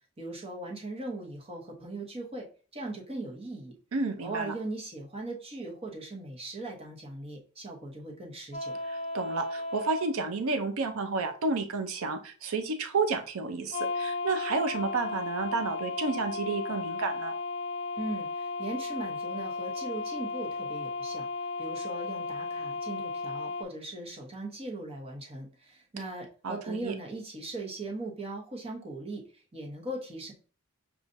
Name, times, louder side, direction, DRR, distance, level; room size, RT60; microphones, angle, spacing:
voice 1, 0.2-2.5 2.7-3.7 4.2-8.8 18.0-21.3 21.6-30.3, right 2 dB, 30° right, 0 dB, 1.0 m, -39 dB
voice 2, 3.9-4.5 8.9-17.3 26.4-26.9, right 3 dB, 90° right, 7 dB, 0.5 m, -31 dB
sound 1, 8.5-10.1 13.7-23.6, left 3 dB, 30° left, 0.6 m, -35 dB
6.5 x 2.4 x 2.6 m, 0.38 s
head